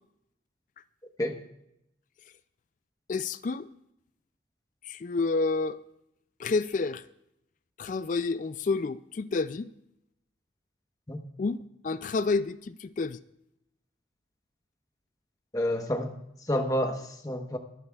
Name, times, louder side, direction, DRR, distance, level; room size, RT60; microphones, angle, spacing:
voice 1, 3.1-3.7 4.9-5.8 6.4-7.0 7.8-9.7 11.4-11.6 11.8-13.2, left 3 dB, 40° left, 0.3 m, -29 dB
voice 2, 15.5-17.6, left 1 dB, 20° left, 1.1 m, -29 dB
24.0 x 10.5 x 2.4 m
head